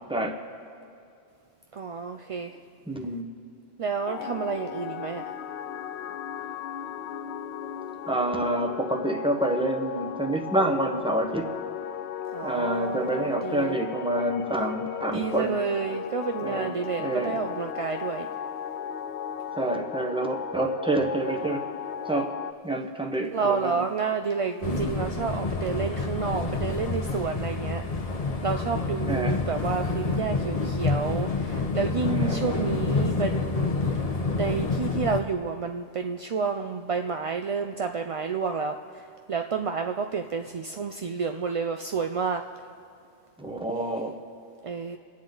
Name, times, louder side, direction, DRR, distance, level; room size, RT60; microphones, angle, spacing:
voice 1, 0.1-0.4 2.9-3.3 8.1-11.5 12.4-15.6 16.4-17.4 19.5-21.7 22.0-22.4 22.6-23.8 29.1-29.4 32.0-32.8 43.4-44.2, right 1 dB, 5° right, 2 dB, 1.0 m, -28 dB
voice 2, 1.7-2.6 3.8-5.3 12.3-13.8 15.1-18.3 23.3-27.8 28.4-33.7 34.4-42.4 44.6-45.0, right 5 dB, 55° right, 5 dB, 0.3 m, -30 dB
sound 1, 4.1-22.5, left 9 dB, 80° left, 0.8 m, -36 dB
sound 2, 24.6-35.2, left 3 dB, 35° left, 1.0 m, -28 dB
28.5 x 9.5 x 3.9 m, 2.4 s
omnidirectional pair, 1.1 m